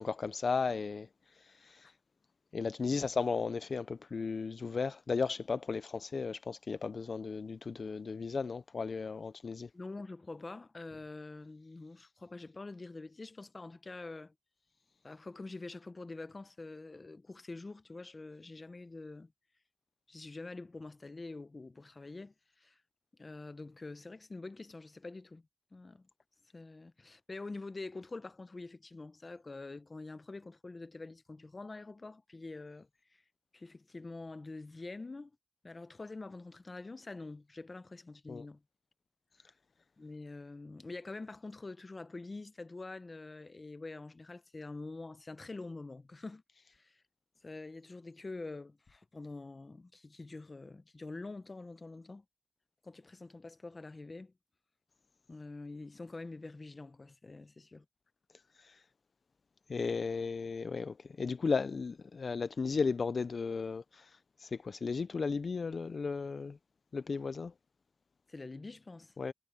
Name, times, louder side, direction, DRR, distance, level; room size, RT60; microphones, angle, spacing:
voice 1, 0.0-1.9 2.5-9.7 38.3-38.4 58.6-58.8 59.7-66.6 66.9-67.5 69.2-69.3, left 4 dB, 45° left, 0.3 m, -35 dB
voice 2, 9.7-14.3 15.0-19.3 20.1-22.8 23.2-26.1 26.5-33.2 33.5-35.3 35.6-38.6 39.4-39.5 40.0-46.4 46.7-47.0 47.4-52.2 52.8-54.3 55.3-57.8 68.3-69.1, left 3 dB, 30° left, 0.7 m, -46 dB
wide cardioid pair, 150°, 0 cm